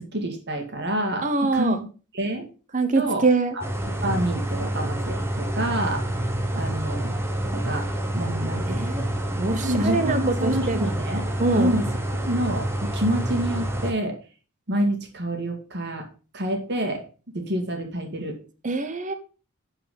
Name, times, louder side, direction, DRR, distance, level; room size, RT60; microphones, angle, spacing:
voice 1, 0.0-1.9 2.1-2.5 3.0-3.3 3.5-6.0 6.6-7.1 7.5-8.9 9.6-11.3 11.6-14.2 14.7-16.1 16.3-17.0 17.3-18.4, right 1 dB, 50° right, 5 dB, 2.1 m, -28 dB
voice 2, 1.2-1.8 2.7-3.5 8.7-9.1 9.4-10.9 11.4-11.7 18.6-19.1, right 3 dB, 35° right, 9 dB, 0.9 m, -24 dB
sound 1, 3.6-13.9, right 1 dB, 10° right, 1.2 m, -28 dB
11.0 x 4.8 x 5.2 m, 0.36 s
head